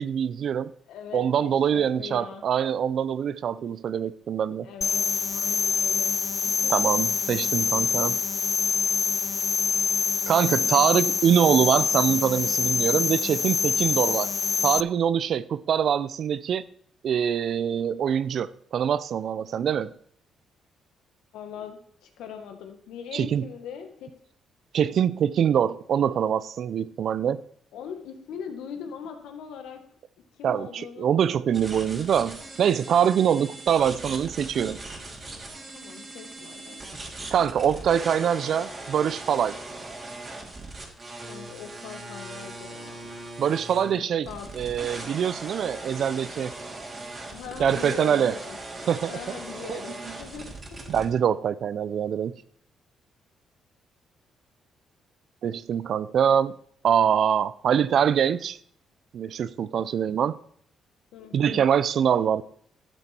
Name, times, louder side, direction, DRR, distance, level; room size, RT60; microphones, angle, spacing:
voice 1, 0.0-0.7 1.1-4.7 6.7-8.2 10.3-14.3 14.6-16.6 17.0-19.9 23.1-23.5 24.7-27.4 30.4-34.8 37.3-39.6 43.4-44.3 44.6-46.5 47.6-48.4 48.9-49.4 49.7-50.1 50.9-52.3 55.4-56.5 56.8-58.6 59.1-60.4 61.3-62.4, right 8 dB, 65° right, 0.5 m, -24 dB
voice 2, 0.9-2.4 4.6-6.7 21.3-24.1 27.7-29.8 30.3-31.0 31.6-32.1 35.7-36.8 41.3-43.1 43.9-44.5 47.2-48.6 49.1-51.0 59.9-60.1 61.1-61.7, left 7 dB, 85° left, 1.6 m, -41 dB
sound 1, 4.8-14.8, left 5 dB, 40° left, 0.4 m, -25 dB
sound 2, 31.5-51.1, right 2 dB, 30° right, 2.9 m, -39 dB
12.0 x 8.0 x 4.4 m
cardioid pair, 90°, 0 cm